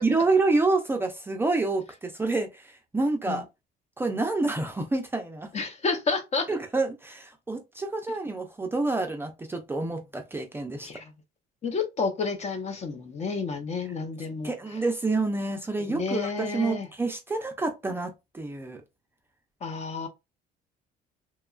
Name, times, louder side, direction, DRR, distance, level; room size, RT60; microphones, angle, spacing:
voice 1, 0.0-3.5 4.0-5.5 6.5-10.9 14.4-18.8, right 3 dB, 15° right, 0.4 m, -28 dB
voice 2, 5.5-6.5 10.8-11.0 11.6-14.5 15.9-16.9 19.6-20.1, left 4 dB, 40° left, 0.7 m, -30 dB
2.9 x 2.3 x 2.3 m
cardioid pair, 110°, 17 cm